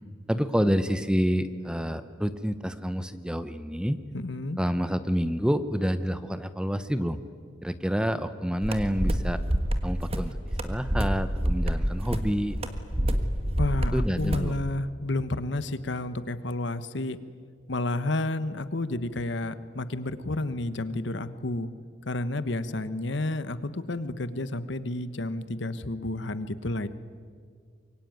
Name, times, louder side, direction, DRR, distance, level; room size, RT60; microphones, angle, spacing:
voice 1, 0.3-4.0 4.6-7.2 7.6-9.4 9.8-10.4 10.6-12.6 13.9-14.6, equal, 5° right, 12 dB, 0.8 m, -28 dB
voice 2, 4.1-4.6 13.6-17.2 17.7-21.7 22.1-26.9, left 2 dB, 70° left, 13 dB, 1.0 m, -31 dB
sound 1, 8.6-14.5, equal, 30° right, 1.5 m, -27 dB
24.5 x 23.0 x 9.3 m, 2.1 s
head